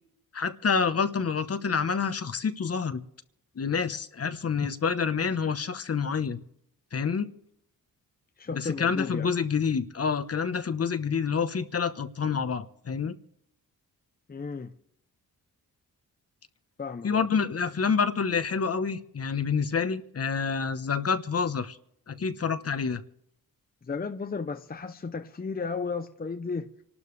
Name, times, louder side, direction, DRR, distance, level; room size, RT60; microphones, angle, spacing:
voice 1, 0.3-3.0 3.6-6.4 6.9-7.3 8.5-13.1 17.0-21.8 22.1-23.0, left 5 dB, 40° left, 1.1 m, -28 dB
voice 2, 8.4-9.3 14.3-14.7 16.8-17.3 23.9-26.7, left 4 dB, 25° left, 0.8 m, -34 dB
27.0 x 12.5 x 3.3 m
cardioid pair, 105°, 36 cm